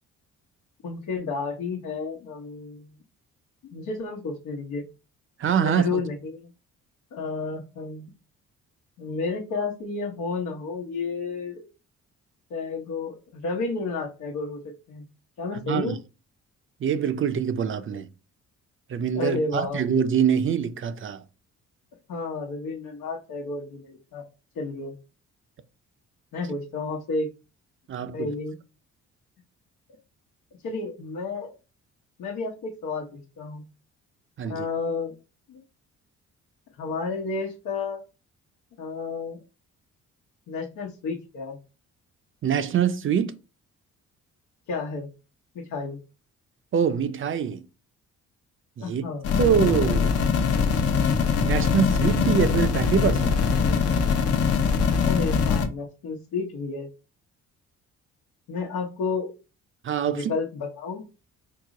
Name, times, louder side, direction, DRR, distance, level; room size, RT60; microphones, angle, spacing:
voice 1, 0.8-2.9 3.7-4.8 5.6-6.5 7.1-8.1 9.0-11.7 12.5-14.6 14.9-15.0 15.4-16.0 19.1-19.9 22.1-24.2 24.5-24.9 26.3-27.3 28.1-28.6 30.6-31.6 32.2-33.6 34.4-35.1 35.5-35.6 36.8-38.0 38.8-39.4 40.5-41.6 44.7-45.1 45.5-46.0 48.8-49.3 53.5-54.0 55.0-56.9 58.5-59.3 60.1-61.1, left 4 dB, 80° left, 1.0 m, -31 dB
voice 2, 5.4-6.0 15.6-16.0 16.8-18.1 18.9-21.2 27.9-28.3 34.4-34.7 42.4-43.4 46.7-47.6 48.8-49.0 49.4-50.2 50.6-50.7 51.4-53.4 59.8-60.3, right 8 dB, 45° right, 0.5 m, -24 dB
sound 1, 49.2-55.7, left 6 dB, 55° left, 0.8 m, -22 dB
4.7 x 2.0 x 3.7 m
cardioid pair, 90°, 30 cm